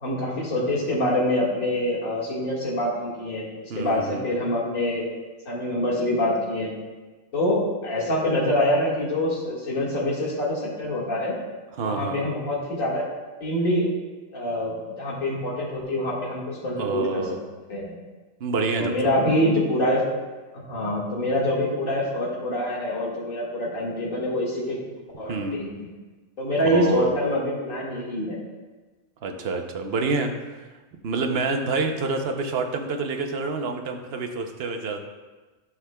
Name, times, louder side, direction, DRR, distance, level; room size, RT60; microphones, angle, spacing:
voice 1, 0.0-5.1 5.5-6.7 7.3-11.4 11.8-13.0 13.4-13.9 14.3-17.2 17.7-17.9 18.8-20.0 20.5-24.8 25.2-25.9 26.4-28.4, left 1 dB, 85° left, -5 dB, 2.2 m, -25 dB
voice 2, 3.7-4.3 11.8-12.2 16.8-17.4 18.4-19.1 25.3-25.6 26.7-27.2 29.2-30.7 31.0-35.0, right 3 dB, 55° right, 4 dB, 0.9 m, -27 dB
11.5 x 6.0 x 2.2 m, 1.3 s
omnidirectional pair, 1.4 m